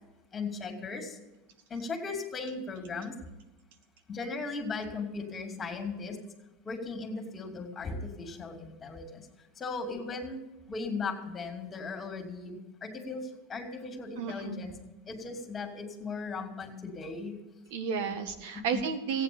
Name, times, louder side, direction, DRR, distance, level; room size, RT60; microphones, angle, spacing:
voice 1, 0.3-1.2 1.7-3.1 4.1-6.2 6.6-9.3 9.6-10.4 10.7-14.7 15.1-17.4 18.0-18.2 18.5-18.8, left 4 dB, 20° left, 4 dB, 2.7 m, -37 dB
voice 2, 14.2-14.6 17.7-19.2, right 6 dB, 70° right, 8 dB, 1.7 m, -32 dB
15.0 x 9.2 x 7.0 m, 1.0 s
supercardioid pair, 115°, 0 cm